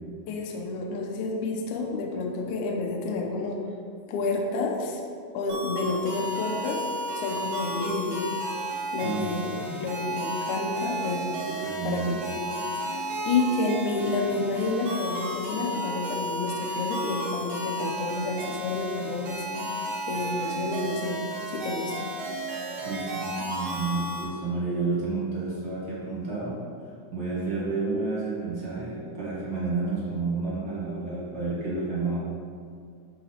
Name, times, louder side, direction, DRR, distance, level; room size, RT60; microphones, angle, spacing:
voice 1, 0.3-3.6 4.1-5.0 5.3-6.8 7.1-8.3 8.9-9.5 9.8-12.0 12.4-19.8 20.1-21.2 21.5-21.9, left 3 dB, 70° left, 1 dB, 1.9 m, -30 dB
sound 1, 5.5-24.2, right 1 dB, 80° right, 4.0 m, -33 dB
voice 2, 9.0-9.7 11.5-12.1 22.8-26.6 27.1-32.2, right 3 dB, 55° right, -8 dB, 1.2 m, -30 dB
11.5 x 4.0 x 4.3 m, 2.3 s
omnidirectional pair, 4.4 m